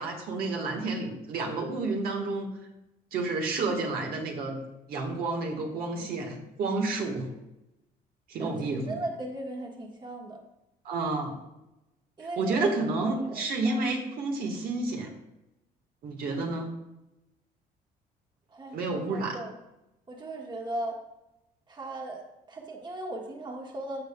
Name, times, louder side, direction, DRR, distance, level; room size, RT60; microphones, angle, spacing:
voice 1, 0.0-2.5 3.1-4.6 4.9-7.3 8.3-9.0 10.8-11.3 12.4-15.1 16.0-16.7 18.7-19.4, right 3 dB, 60° right, 2 dB, 1.5 m, -30 dB
voice 2, 8.4-10.4 12.2-12.7 13.0-13.8 18.5-19.6 20.1-21.0 21.7-22.2 22.5-24.0, right 1 dB, 25° right, 0 dB, 1.5 m, -37 dB
15.5 x 5.2 x 2.3 m, 0.93 s
cardioid pair, 110°, 17 cm